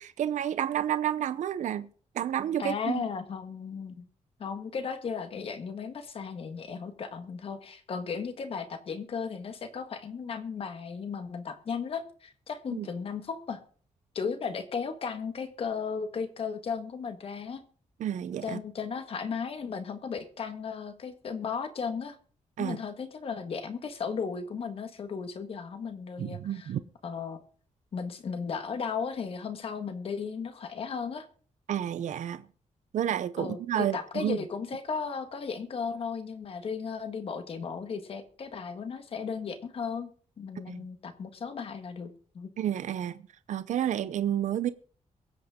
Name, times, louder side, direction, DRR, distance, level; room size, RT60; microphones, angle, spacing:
voice 1, 0.0-1.9 2.1-3.0 12.7-12.9 18.0-18.6 22.6-22.8 26.2-26.8 31.7-32.4 32.9-34.4 40.7-40.8 42.6-43.2 43.5-44.7, right 10 dB, 70° right, 0.7 m, -30 dB
voice 2, 2.6-4.0 4.4-13.6 14.2-17.6 18.4-22.2 22.6-26.7 27.0-27.4 27.9-31.3 33.4-40.1 40.4-42.5, left 5 dB, 50° left, 1.6 m, -35 dB
22.5 x 8.4 x 3.7 m
wide cardioid pair, 180°, 13 cm